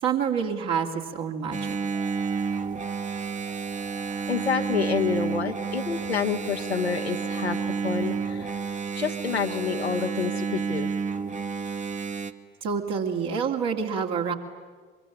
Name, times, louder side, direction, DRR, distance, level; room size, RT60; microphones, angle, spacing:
voice 1, 0.0-1.8 12.6-14.3, right 6 dB, 55° right, 2 dB, 2.5 m, -27 dB
Engine, 1.5-12.3, right 5 dB, 25° right, 1.2 m, -30 dB
sound 1, 2.0-9.5, right 8 dB, 75° right, 2.8 m, -47 dB
voice 2, 4.3-7.6 7.8-8.5 8.9-10.9, left 6 dB, 85° left, 5 dB, 1.1 m, -28 dB
23.5 x 23.5 x 9.8 m, 1.5 s
figure-of-eight pair, 50°, 31 cm